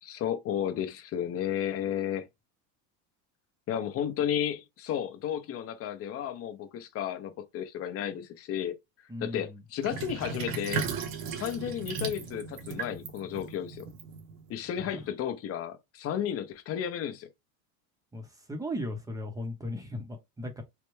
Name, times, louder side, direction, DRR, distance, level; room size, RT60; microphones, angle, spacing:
voice 1, 0.0-2.3 3.7-8.7 9.2-11.0 11.3-13.9 14.5-17.3, left 9 dB, 35° left, 0.6 m, -33 dB
voice 2, 9.1-9.6 14.8-15.0 18.1-20.6, left 1 dB, 10° right, 0.6 m, -37 dB
Sink (filling or washing), 9.8-14.6, right 5 dB, 50° right, 0.8 m, -36 dB
3.3 x 2.1 x 3.1 m
supercardioid pair, 115°, 45 cm